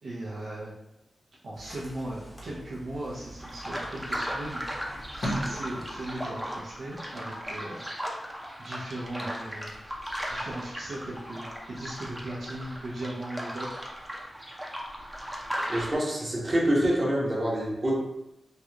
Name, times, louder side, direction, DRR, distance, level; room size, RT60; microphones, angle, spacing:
voice 1, 0.0-0.7 1.4-8.3 8.6-9.7 10.3-13.8, right 1 dB, 75° right, -7 dB, 0.8 m, -38 dB
sound 1, 1.5-6.5, equal, 60° left, 1.0 m, -40 dB
sound 2, 3.4-15.9, equal, 10° right, 0.6 m, -37 dB
voice 2, 15.7-17.9, right 1 dB, 40° right, -4 dB, 1.0 m, -26 dB
3.1 x 2.4 x 3.0 m, 0.90 s
cardioid pair, 65°, 0 cm